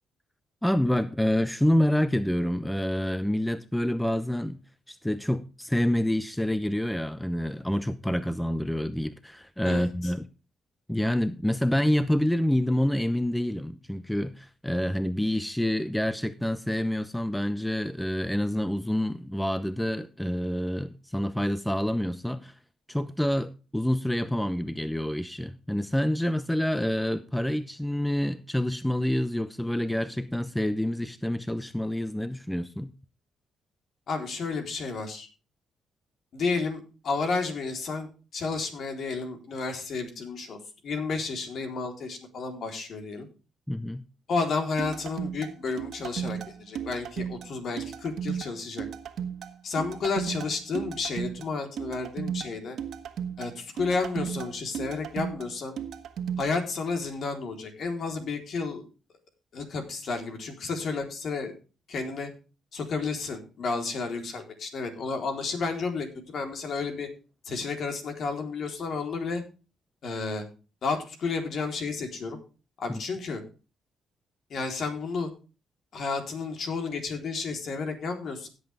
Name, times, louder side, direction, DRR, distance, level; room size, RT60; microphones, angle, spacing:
voice 1, 0.6-4.6 4.9-10.3 10.9-22.6 22.9-32.9 43.7-44.0 72.9-73.0, left 1 dB, 5° left, 0.8 m, -27 dB
voice 2, 34.1-35.3 36.3-40.6 40.8-43.3 44.3-48.9 49.6-52.8 53.4-55.7 56.4-58.8 59.5-61.5 61.9-62.3 62.7-67.1 67.4-69.4 70.0-70.4 70.8-72.4 72.8-73.4 74.5-75.3 75.9-78.5, left 4 dB, 60° left, 3.9 m, -31 dB
sound 1, 44.8-56.5, right 8 dB, 70° right, 1.5 m, -35 dB
16.5 x 8.1 x 3.5 m
cardioid pair, 90°, 0 cm